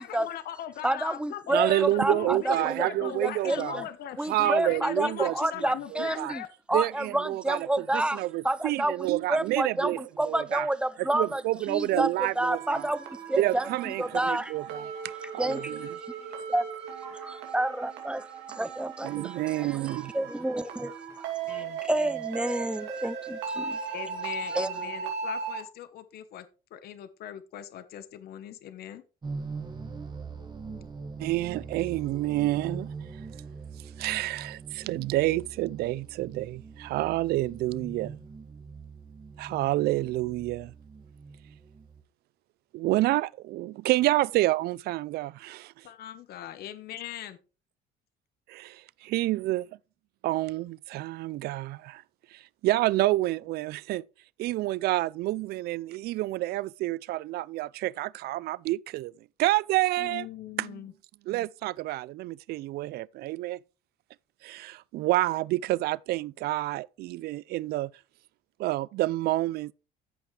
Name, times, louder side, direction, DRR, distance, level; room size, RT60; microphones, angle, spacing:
voice 1, 0.0-6.5 21.5-21.8 23.9-26.5 26.7-29.0 45.8-47.4 60.0-60.9, left 11 dB, 65° left, 1.0 m, -40 dB
voice 2, 0.8-3.9 4.2-6.4 6.7-11.4 11.7-12.1 12.4-13.7 14.0-14.5 15.4-15.7 16.5-16.6 17.0-18.3 18.6-23.8 24.5-24.7, right 1 dB, 5° right, 0.6 m, -29 dB
voice 3, 1.5-3.8 4.3-5.4 5.9-6.3 6.7-10.7 11.0-12.9 13.4-14.9 15.3-15.9 19.0-20.1 31.2-32.9 34.0-38.2 39.4-40.7 42.7-45.9 48.5-49.7 50.2-52.0 52.3-54.0 54.4-59.1 59.4-60.3 60.6-60.8 61.3-63.6 64.4-67.9 68.6-69.7, right 17 dB, 70° right, 0.4 m, -28 dB
sound 1, 12.5-25.6, right 6 dB, 85° right, 2.5 m, -37 dB
sound 2, 29.2-42.0, right 4 dB, 25° right, 1.8 m, -42 dB
14.0 x 5.8 x 3.2 m
cardioid pair, 110°, 17 cm